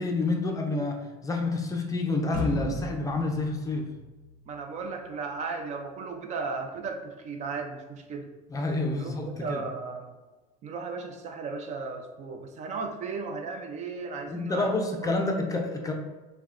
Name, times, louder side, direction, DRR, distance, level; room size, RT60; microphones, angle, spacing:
voice 1, 0.0-3.9 8.5-9.6 14.3-15.9, left 2 dB, 20° left, 2 dB, 0.5 m, -28 dB
sound 1, 2.3-4.8, left 1 dB, 85° right, 1.1 m, -35 dB
voice 2, 4.5-8.3 9.0-10.2 10.6-14.9, right 4 dB, 40° right, 5 dB, 0.4 m, -35 dB
5.9 x 2.2 x 2.4 m, 1.2 s
supercardioid pair, 115°, 18 cm